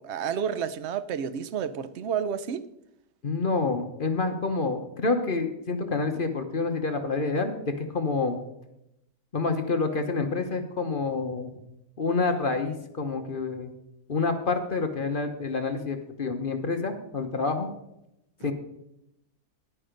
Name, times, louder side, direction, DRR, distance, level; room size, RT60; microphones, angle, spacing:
voice 1, 0.0-2.6 18.4-18.5, right 8 dB, 60° right, 0.8 m, -30 dB
voice 2, 3.2-8.4 9.3-11.5 12.0-13.7 14.1-17.7 18.4-18.5, left 3 dB, 40° left, 1.0 m, -28 dB
11.0 x 9.3 x 5.1 m
omnidirectional pair, 1.6 m